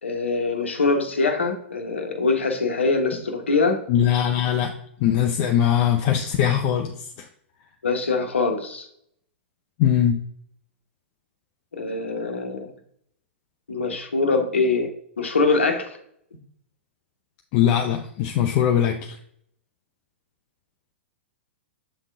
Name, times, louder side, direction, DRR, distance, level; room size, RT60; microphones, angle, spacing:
voice 1, 0.0-3.8 7.8-8.9 11.7-12.7 13.7-14.9 15.2-16.0, left 3 dB, 75° left, 5 dB, 1.1 m, -23 dB
voice 2, 3.9-4.7 5.0-7.3 9.8-10.2 17.5-19.2, left 10 dB, 40° left, 4 dB, 0.6 m, -21 dB
7.6 x 3.7 x 3.7 m, 0.67 s
figure-of-eight pair, 105°, 7 cm